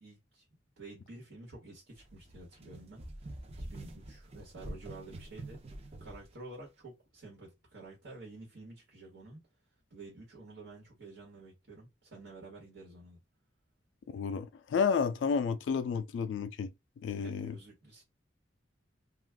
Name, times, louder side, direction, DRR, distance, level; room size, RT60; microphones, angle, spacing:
voice 1, 0.0-0.4 0.8-3.0 3.6-5.6 6.0-9.4 9.9-13.2 17.1-18.0, right 2 dB, 70° right, 1.3 m, -50 dB
sound 1, 2.0-6.3, right 1 dB, 35° right, 0.6 m, -46 dB
voice 2, 14.1-16.7 17.0-17.5, left 6 dB, 80° left, 0.3 m, -31 dB
2.4 x 2.3 x 3.4 m
head